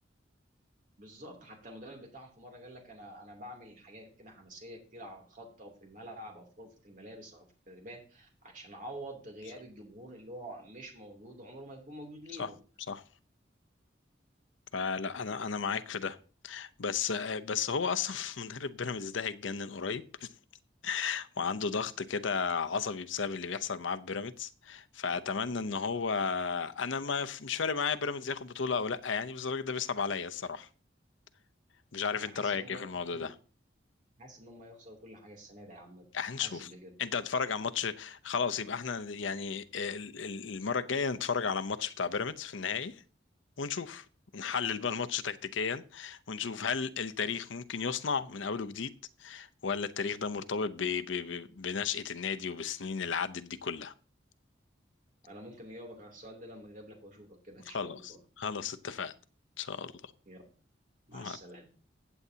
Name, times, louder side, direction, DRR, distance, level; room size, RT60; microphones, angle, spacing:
voice 1, 1.0-12.6 32.2-32.8 33.1-33.3 34.2-36.1 36.3-36.9 55.2-58.2 60.3-60.4 61.1-61.7, right 1 dB, 45° right, 2.9 m, -48 dB
voice 2, 14.7-16.2 16.4-20.3 20.8-30.7 31.9-33.3 36.1-36.7 37.0-43.0 43.6-44.0 44.3-48.9 49.2-53.9 57.7-59.1 59.6-59.9 61.1-61.4, left 5 dB, 80° left, 0.7 m, -34 dB
15.5 x 8.0 x 2.8 m
head